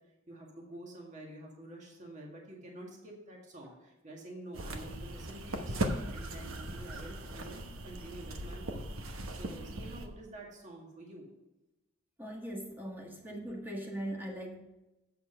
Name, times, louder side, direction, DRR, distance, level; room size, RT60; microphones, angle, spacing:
voice 1, 0.3-8.8 9.3-11.3, right 1 dB, 35° right, -1 dB, 1.9 m, -48 dB
sound 1, 4.5-10.1, right 1 dB, 75° right, 1.0 m, -38 dB
voice 2, 12.2-14.6, right 1 dB, 10° right, 0 dB, 1.8 m, -40 dB
8.1 x 6.9 x 5.5 m, 0.98 s
head